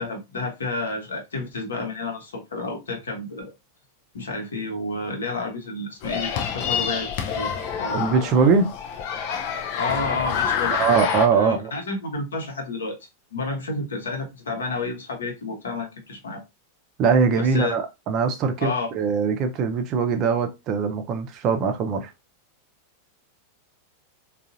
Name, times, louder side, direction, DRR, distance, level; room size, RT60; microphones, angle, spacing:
voice 1, 0.0-3.5 4.1-7.5 7.8-8.1 8.4-8.5 9.8-10.8 11.3-12.9 13.3-16.4 17.4-17.8 18.6-18.9, left 3 dB, 70° left, 1.0 m, -30 dB
sound 1, 6.0-11.3, left 7 dB, 45° left, 0.5 m, -27 dB
voice 2, 7.9-8.7 10.8-11.7 17.0-22.1, right 5 dB, 35° right, 0.6 m, -22 dB
3.7 x 2.4 x 2.6 m
figure-of-eight pair, 90°, 0 cm